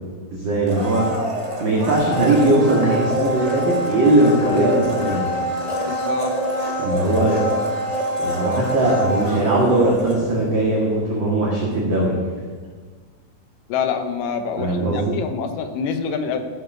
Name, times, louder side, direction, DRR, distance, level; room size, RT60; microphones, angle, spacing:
voice 1, 0.3-1.0 1.6-5.3 6.8-7.4 8.2-12.2 14.6-15.0, right 2 dB, 40° right, -3 dB, 2.1 m, -19 dB
Domestic sounds home sounds, 0.6-10.6 10.9-11.0, equal, 20° right, 1.0 m, -26 dB
voice 2, 5.9-6.3 13.7-16.4, left 6 dB, 80° left, 7 dB, 2.6 m, -26 dB
14.0 x 7.9 x 6.1 m, 1.5 s
omnidirectional pair, 3.9 m